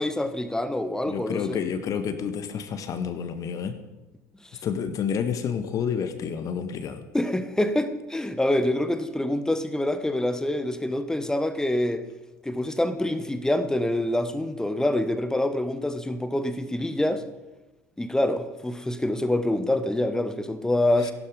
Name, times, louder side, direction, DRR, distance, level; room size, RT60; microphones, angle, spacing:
voice 1, 0.0-1.6 7.1-12.0 12.4-17.2 18.0-21.1, left 1 dB, 5° left, 11 dB, 1.3 m, -26 dB
voice 2, 1.1-3.8 4.6-7.0 21.0-21.1, left 7 dB, 40° left, 9 dB, 1.5 m, -29 dB
16.0 x 11.5 x 5.4 m, 1.1 s
figure-of-eight pair, 60°, 9 cm